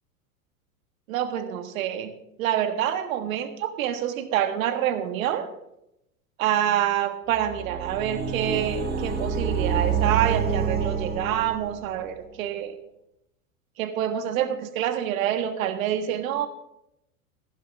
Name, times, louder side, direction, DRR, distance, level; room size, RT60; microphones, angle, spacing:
voice 1, 1.1-2.1 2.4-5.5 6.4-12.8 13.8-16.5, right 11 dB, 65° right, 8 dB, 1.7 m, -27 dB
sound 1, 7.3-12.0, right 6 dB, 20° right, 2.1 m, -27 dB
15.5 x 11.0 x 3.5 m, 0.83 s
hypercardioid pair, 100°, 44 cm